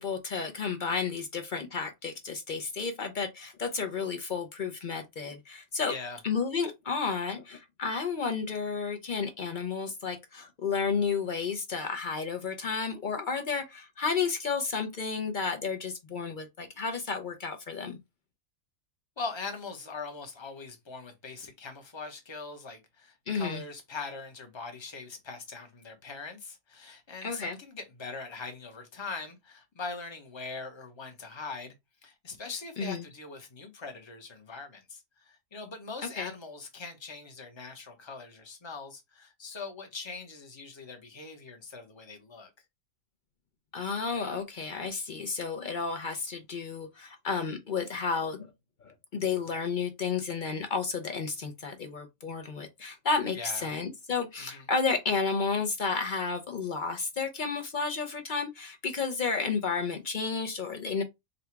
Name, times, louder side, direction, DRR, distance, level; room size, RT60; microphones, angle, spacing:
voice 1, 0.0-5.9 6.2-18.0 23.3-23.6 27.2-27.6 32.8-33.0 36.1-36.3 43.7-48.5 48.8-61.0, left 5 dB, 50° left, 0.6 m, -32 dB
voice 2, 5.9-6.2 19.2-31.7 32.0-42.5 53.3-53.7 54.4-54.7, left 4 dB, 25° left, 0.8 m, -41 dB
3.9 x 2.3 x 4.4 m
omnidirectional pair, 1.4 m